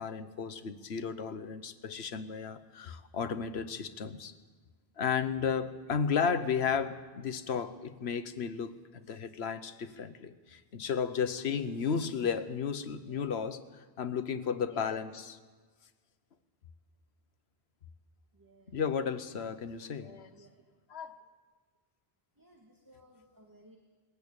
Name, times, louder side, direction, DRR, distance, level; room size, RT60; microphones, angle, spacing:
voice 1, 0.0-4.3 5.0-13.6 14.0-15.4 18.7-20.3 20.9-21.2, left 6 dB, 85° left, 12 dB, 1.2 m, -33 dB
voice 2, 13.0-13.3 18.3-18.8 19.3-20.6 22.4-23.8, right 2 dB, 20° right, 1 dB, 1.9 m, -60 dB
20.5 x 14.5 x 8.9 m, 1.4 s
omnidirectional pair, 1.1 m